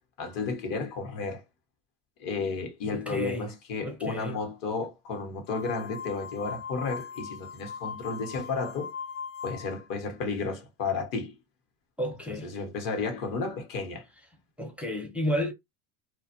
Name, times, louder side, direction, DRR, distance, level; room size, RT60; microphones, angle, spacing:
voice 1, 0.2-1.4 2.2-8.9 9.4-11.3 12.4-14.0, left 4 dB, 45° left, 1.0 m, -32 dB
voice 2, 2.9-3.5 3.8-4.4 12.0-12.5 14.6-15.5, equal, 5° right, 0.5 m, -32 dB
sound 1, 5.5-9.9, left 6 dB, 90° left, 0.6 m, -39 dB
2.2 x 2.1 x 2.8 m
hypercardioid pair, 100°, 47 cm